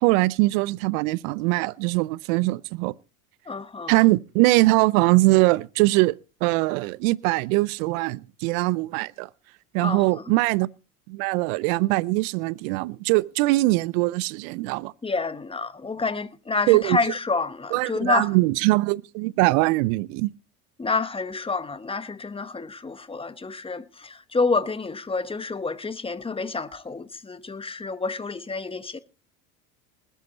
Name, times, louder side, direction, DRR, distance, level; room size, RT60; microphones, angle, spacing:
voice 1, 0.0-2.9 3.9-9.3 9.7-10.7 11.1-14.9 16.7-17.0 17.7-20.3, right 21 dB, 65° right, 0.7 m, -22 dB
voice 2, 3.5-4.0 9.8-10.2 15.0-18.4 20.8-29.0, left 4 dB, 10° left, 1.2 m, -28 dB
20.5 x 8.2 x 4.1 m
hypercardioid pair, 85°, 44 cm